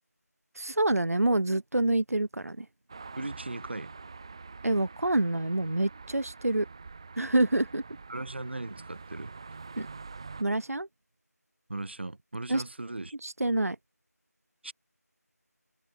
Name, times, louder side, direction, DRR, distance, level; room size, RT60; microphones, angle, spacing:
voice 1, 0.5-2.7 4.6-6.7 7.2-7.8 9.8-9.9 10.4-10.9 12.5-12.6 13.2-13.8, right 2 dB, 60° right, 1.5 m, -27 dB
sound 1, 2.9-10.4, right 4 dB, 20° right, 5.0 m, -46 dB
voice 2, 3.2-3.9 8.1-9.3 11.7-13.2 14.6-14.7, right 2 dB, 40° right, 3.6 m, -38 dB
figure-of-eight pair, 175°, 9 cm